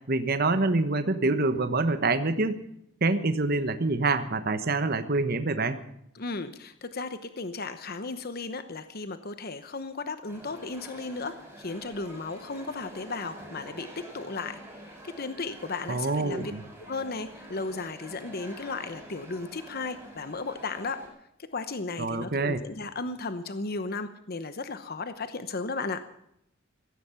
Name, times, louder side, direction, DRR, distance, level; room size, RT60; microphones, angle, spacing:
voice 1, 0.1-2.6 3.0-5.8 15.9-16.6 22.0-22.6, right 3 dB, 50° right, 10 dB, 1.2 m, -26 dB
voice 2, 6.1-14.6 15.0-16.5 16.8-21.0 21.5-26.0, left 3 dB, 50° left, 10 dB, 0.9 m, -35 dB
sound 1, 10.3-21.1, right 1 dB, 10° right, 6.4 m, -47 dB
16.5 x 15.0 x 5.8 m, 0.75 s
head